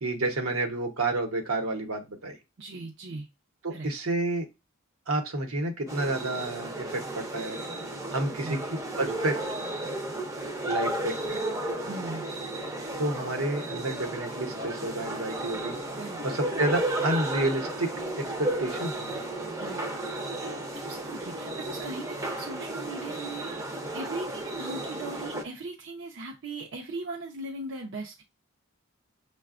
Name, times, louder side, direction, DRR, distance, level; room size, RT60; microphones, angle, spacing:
voice 1, 0.0-2.4 3.6-4.5 5.1-7.6 8.1-8.6 9.0-9.4 10.7-11.4 13.0-15.8 16.2-19.2, right 2 dB, 80° right, 4 dB, 1.0 m, -30 dB
voice 2, 2.6-3.3 3.7-3.9 8.4-8.6 11.9-12.3 15.9-16.2 19.6-19.8 20.7-23.6 23.9-28.2, right 2 dB, 55° right, 0 dB, 0.6 m, -38 dB
sound 1, 5.9-25.4, right 1 dB, 15° right, 0.5 m, -33 dB
6.5 x 2.2 x 2.4 m, 0.25 s
head